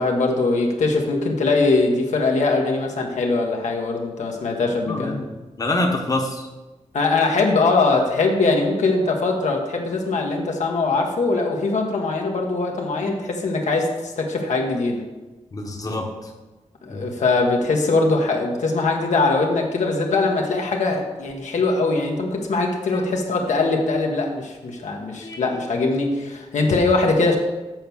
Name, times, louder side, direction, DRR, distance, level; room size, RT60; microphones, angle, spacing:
voice 1, 0.0-5.2 6.9-15.0 16.9-27.4, left 3 dB, 85° left, 1 dB, 1.3 m, -21 dB
voice 2, 4.9-5.3 5.6-6.5 15.5-16.3 16.9-17.1 22.9-23.0 25.2-25.5, left 2 dB, 30° left, 2 dB, 1.0 m, -26 dB
7.7 x 4.6 x 7.0 m, 1.2 s
wide cardioid pair, 125°, 12 cm